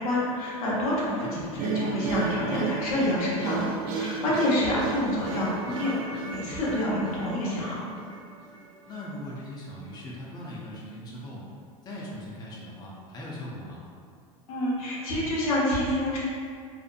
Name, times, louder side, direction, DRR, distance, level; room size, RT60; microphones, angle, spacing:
voice 1, 0.0-3.7 3.9-7.8 14.5-16.2, left 1 dB, 80° left, -6 dB, 0.8 m, -27 dB
voice 2, 1.2-1.6 4.2-4.4 8.9-11.5 11.8-13.8, left 1 dB, 20° left, -5 dB, 0.5 m, -40 dB
sound 1, 1.6-8.7, right 4 dB, 50° right, 0.4 m, -33 dB
2.7 x 2.1 x 2.4 m, 2.3 s
hypercardioid pair, 100°, 18 cm